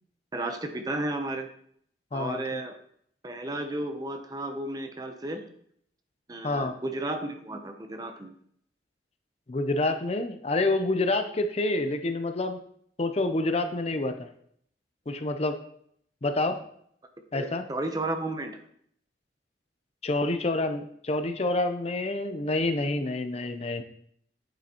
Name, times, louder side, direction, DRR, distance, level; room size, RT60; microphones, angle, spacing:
voice 1, 0.3-1.5 2.1-2.8 3.2-5.4 6.3-8.3 17.3-18.6, right 2 dB, 20° right, 6 dB, 0.7 m, -33 dB
voice 2, 2.1-2.6 6.4-6.7 9.5-12.6 13.0-14.3 15.1-15.6 16.2-16.6 17.3-17.6 20.0-23.8, left 2 dB, 35° left, 7 dB, 0.5 m, -28 dB
9.4 x 6.4 x 2.9 m, 0.66 s
head